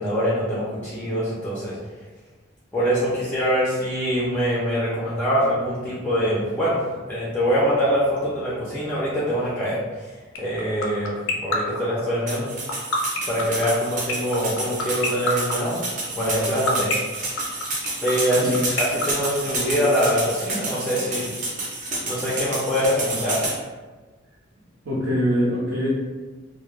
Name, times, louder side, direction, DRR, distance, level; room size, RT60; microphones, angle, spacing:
voice 1, 0.0-1.8 2.7-6.8 7.1-12.5 13.3-15.8 16.2-17.4 18.0-21.3 22.0-23.4, equal, 10° left, -8 dB, 0.4 m, -24 dB
sound 1, 10.4-20.0, left 4 dB, 85° left, 0.4 m, -24 dB
sound 2, 12.3-23.6, right 2 dB, 40° right, 0.6 m, -30 dB
voice 2, 24.8-25.9, equal, 80° right, -8 dB, 0.7 m, -23 dB
2.2 x 2.0 x 3.1 m, 1.3 s
head